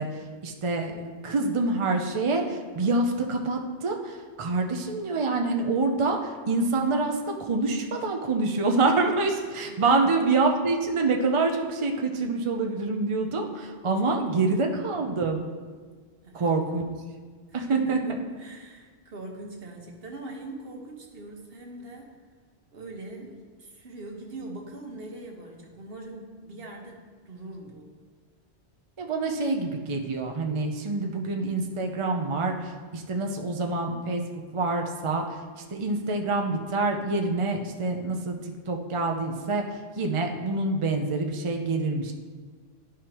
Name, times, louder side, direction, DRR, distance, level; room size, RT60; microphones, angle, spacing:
voice 1, 0.0-15.5 16.3-16.9 17.5-18.0 29.0-34.2 34.5-42.1, right 3 dB, 40° right, 2 dB, 0.5 m, -26 dB
voice 2, 9.7-10.2 14.3-14.8 16.2-16.6 17.5-22.1 22.7-27.9, right 2 dB, 55° right, 1 dB, 1.2 m, -42 dB
12.0 x 4.9 x 2.9 m, 1.5 s
omnidirectional pair, 1.2 m